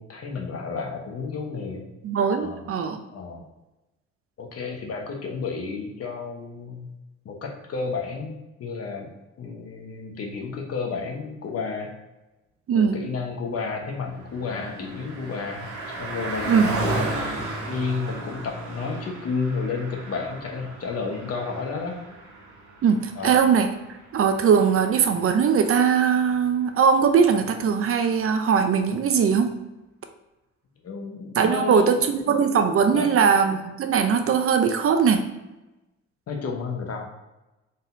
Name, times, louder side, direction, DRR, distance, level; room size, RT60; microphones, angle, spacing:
voice 1, 0.0-1.9 2.4-2.6 3.1-3.5 4.4-6.9 7.2-9.1 9.4-11.9 12.7-22.1 23.2-23.4 30.8-32.0 32.9-33.1 36.3-37.1, left 4 dB, 55° left, 2 dB, 0.9 m, -32 dB
voice 2, 2.0-3.0 12.7-13.0 16.5-16.8 22.8-23.7 24.1-29.5 31.4-35.2, right 6 dB, 50° right, 7 dB, 0.5 m, -20 dB
Car passing by, 13.7-25.5, right 2 dB, 75° right, 1.2 m, -34 dB
4.0 x 3.8 x 2.6 m, 1.0 s
cardioid pair, 90°, 30 cm